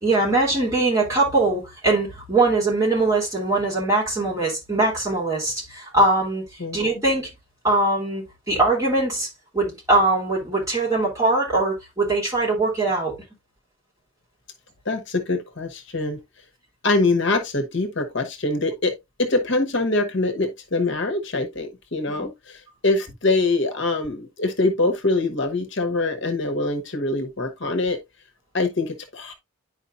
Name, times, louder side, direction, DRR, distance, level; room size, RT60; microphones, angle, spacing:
voice 1, 0.0-7.3 7.6-13.2 22.1-22.3, right 2 dB, 15° right, 3.1 m, -22 dB
voice 2, 14.9-16.2 16.8-18.9 19.2-28.0 28.5-29.3, left 2 dB, 55° left, 1.1 m, -24 dB
10.0 x 4.9 x 2.5 m
head